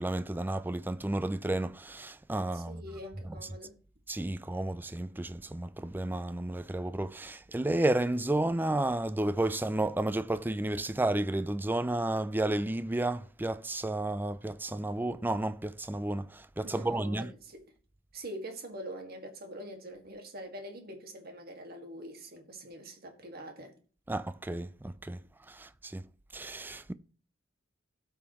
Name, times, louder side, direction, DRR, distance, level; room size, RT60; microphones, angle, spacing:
voice 1, 0.0-2.8 3.2-3.4 4.1-17.3 24.1-25.2 25.5-26.0 26.3-26.9, right 1 dB, 10° right, 0.4 m, -32 dB
voice 2, 2.5-3.8 16.6-17.6 18.1-23.7, right 1 dB, 50° right, 1.9 m, -44 dB
17.0 x 5.8 x 3.0 m
head